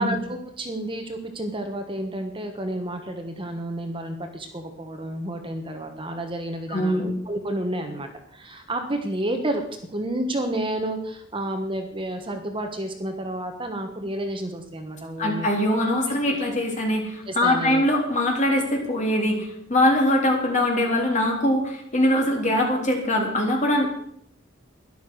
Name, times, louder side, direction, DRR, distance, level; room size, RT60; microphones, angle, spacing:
voice 1, 0.0-9.6 9.9-15.5 16.1-16.4 17.2-17.8, right 1 dB, 25° right, 5 dB, 1.4 m, -30 dB
voice 2, 6.7-7.0 15.2-23.9, left 1 dB, 40° left, 0 dB, 3.5 m, -22 dB
12.5 x 11.5 x 6.4 m, 0.69 s
head